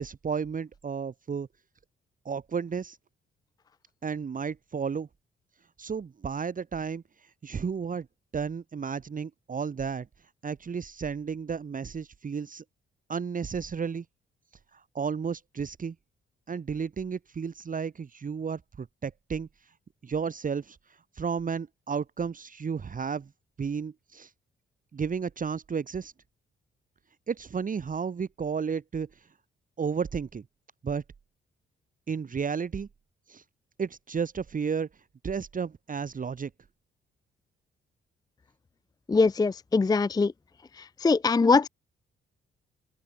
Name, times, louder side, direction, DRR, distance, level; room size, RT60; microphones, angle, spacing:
voice 1, 0.0-1.5 2.2-3.0 4.0-5.1 5.8-7.0 7.4-8.1 8.3-10.1 10.4-12.6 13.1-14.0 14.7-15.9 16.5-19.5 20.0-20.8 21.1-23.3 23.6-24.3 24.9-26.1 27.3-29.1 29.8-30.4 30.8-31.0 32.1-32.9 33.3-33.4 33.8-34.9 35.2-36.5, right 6 dB, 40° right, 1.2 m, -32 dB
voice 2, 39.1-40.3 40.7-41.7, left 4 dB, 20° left, 0.5 m, -22 dB
open air
supercardioid pair, 55°, 21 cm